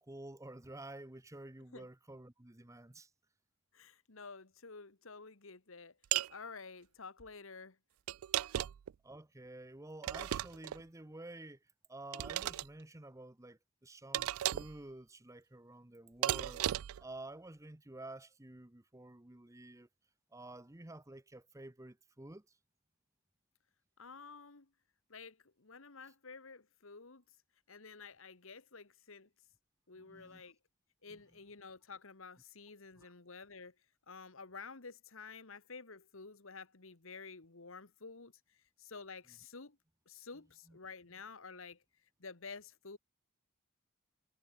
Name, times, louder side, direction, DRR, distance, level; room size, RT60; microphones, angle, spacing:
voice 1, 0.0-3.1 9.0-16.7 17.0-19.9 20.3-22.6 30.0-30.4 33.0-33.1 40.7-40.8, right 2 dB, 15° right, 0.9 m, -51 dB
voice 2, 3.7-6.0 6.3-7.8 24.0-24.7 25.1-27.4 27.7-29.3 29.9-30.6 31.0-33.8 34.1-39.8 40.0-43.0, left 4 dB, 65° left, 1.6 m, -51 dB
sound 1, 6.1-6.3 8.1-8.9 10.0-10.8 12.1-12.7 14.1-14.8 16.2-17.0, right 12 dB, 80° right, 0.3 m, -35 dB
head